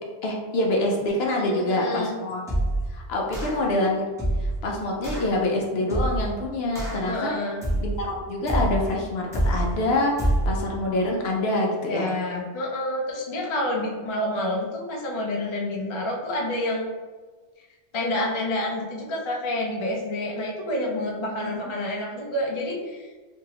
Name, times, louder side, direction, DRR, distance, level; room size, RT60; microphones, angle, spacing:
voice 1, 0.2-2.5 2.9-4.1 4.4-7.3 7.8-12.1 21.2-21.6, left 1 dB, 65° left, -1 dB, 0.7 m, -26 dB
voice 2, 1.4-2.1 7.1-7.6 11.9-16.9 17.9-23.1, left 1 dB, 45° left, -2 dB, 0.4 m, -28 dB
sound 1, 2.5-2.9 3.3-3.7 4.2-4.6 5.0-5.3 5.9-6.3 6.7-7.1 7.6-8.0 8.5-8.9 9.3-9.7 10.2-10.6, right 1 dB, 5° right, 0.6 m, -25 dB
2.9 x 2.6 x 2.8 m, 1.4 s
omnidirectional pair, 1.3 m